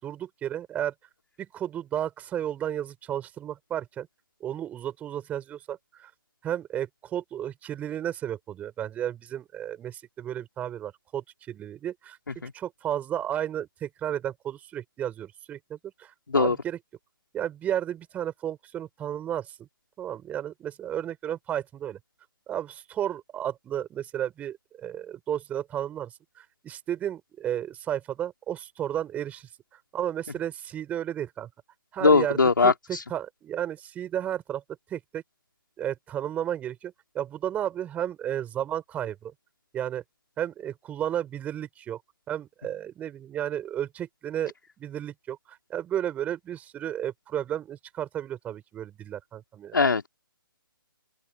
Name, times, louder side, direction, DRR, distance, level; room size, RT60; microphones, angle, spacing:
voice 1, 0.0-0.9 1.4-4.1 4.4-6.1 6.4-12.2 12.5-16.8 17.3-19.7 20.0-22.0 22.5-29.5 29.9-31.5 31.9-34.6 34.9-35.2 35.8-39.3 39.7-40.0 40.4-42.0 42.3-49.7, right 10 dB, 10° right, 6.7 m, -33 dB
voice 2, 32.0-32.7 49.7-50.1, left 4 dB, 65° left, 5.4 m, -20 dB
open air
figure-of-eight pair, 135°, 12 cm